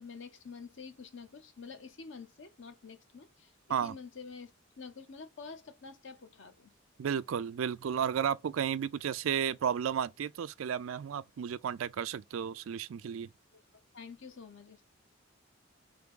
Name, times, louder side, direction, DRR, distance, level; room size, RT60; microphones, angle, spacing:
voice 1, 0.0-4.5 4.8-6.7 13.9-14.8, left 5 dB, 65° left, 0.8 m, -48 dB
voice 2, 7.0-13.3, right 8 dB, 75° right, 0.4 m, -33 dB
3.5 x 3.4 x 3.7 m
head